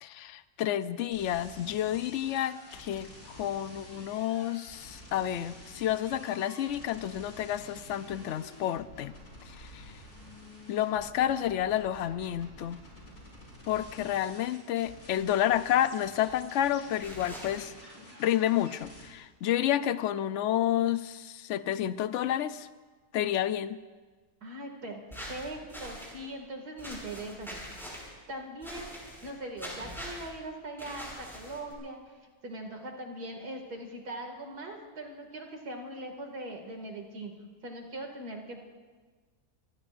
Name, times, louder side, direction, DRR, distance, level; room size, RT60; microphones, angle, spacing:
voice 1, 0.0-9.1 9.5-9.8 10.7-12.8 13.7-17.7 18.2-22.7 23.1-23.8, left 11 dB, 60° left, 13 dB, 0.8 m, -30 dB
sound 1, 1.1-19.1, equal, 85° left, 5.7 m, -50 dB
sound 2, 17.0-17.6 25.1-26.1 26.8-28.1 28.6-29.3 29.6-30.3 30.8-31.7, equal, ahead, 6.5 m, -43 dB
voice 2, 24.4-25.0 25.3-28.0 28.3-37.3 37.6-38.6, right 1 dB, 90° right, 2 dB, 2.9 m, -41 dB
26.5 x 20.0 x 2.6 m, 1.4 s
omnidirectional pair, 1.6 m